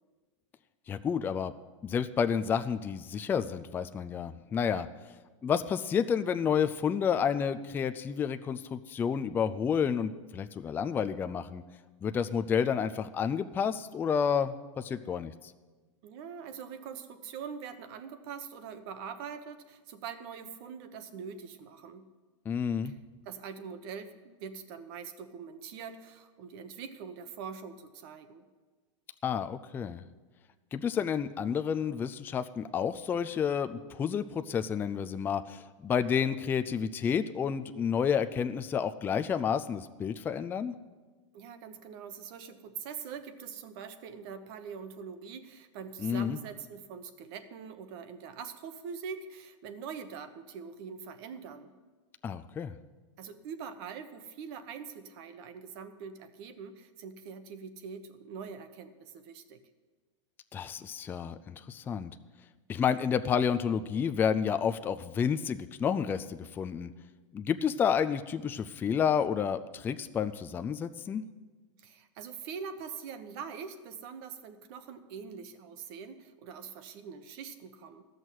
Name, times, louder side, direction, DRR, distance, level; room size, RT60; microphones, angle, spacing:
voice 1, 0.9-1.5 1.8-4.9 5.4-11.6 12.0-15.3 22.5-22.9 29.2-30.0 30.7-40.7 46.0-46.4 52.2-52.7 60.5-62.1 62.7-66.9 67.3-71.2, left 7 dB, 15° left, 10 dB, 0.3 m, -30 dB
voice 2, 16.0-22.1 22.9-23.0 23.2-28.4 41.3-51.7 53.2-59.6 71.8-78.0, right 6 dB, 50° right, 9 dB, 1.1 m, -43 dB
13.5 x 6.4 x 9.2 m, 1.3 s
supercardioid pair, 140°, 16 cm